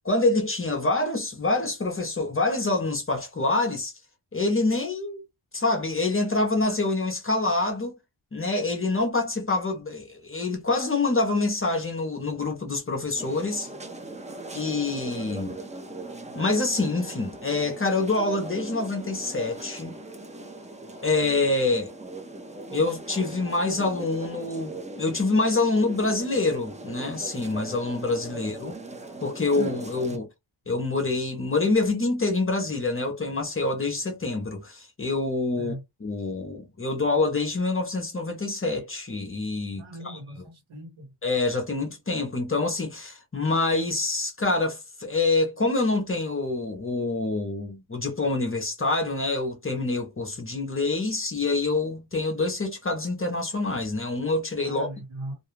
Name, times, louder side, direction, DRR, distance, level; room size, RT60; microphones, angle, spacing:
voice 1, 0.0-3.9 4.3-5.2 5.5-8.0 8.3-13.7 14.5-15.5 16.3-19.9 21.0-21.9 22.7-28.8 29.2-30.3 30.7-35.7 36.0-40.2 41.2-54.9, left 3 dB, 25° left, 0.6 m, -26 dB
sound 1, 13.1-30.2, right 2 dB, 15° right, 0.4 m, -39 dB
voice 2, 39.8-41.1 54.6-55.3, right 1 dB, 70° right, 1.2 m, -39 dB
2.4 x 2.2 x 3.0 m
wide cardioid pair, 145°, 49 cm